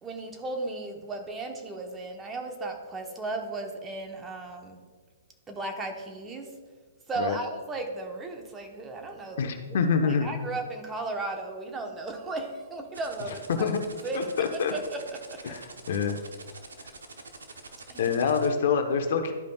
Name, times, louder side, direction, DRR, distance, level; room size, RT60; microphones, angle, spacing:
voice 1, 0.0-4.8 5.5-6.5 7.1-9.8 10.0-13.6 14.0-14.3 14.7-15.6 17.9-18.3, right 2 dB, 15° right, 3 dB, 1.0 m, -35 dB
voice 2, 9.4-10.3 13.5-13.8 14.1-14.7 15.4-15.6 15.9-16.2 18.0-19.3, left 6 dB, 60° left, 6 dB, 0.8 m, -26 dB
sound 1, 12.9-18.5, right 4 dB, 80° right, 0.9 m, -45 dB
12.0 x 5.1 x 2.3 m, 1.5 s
hypercardioid pair, 125°, 0 cm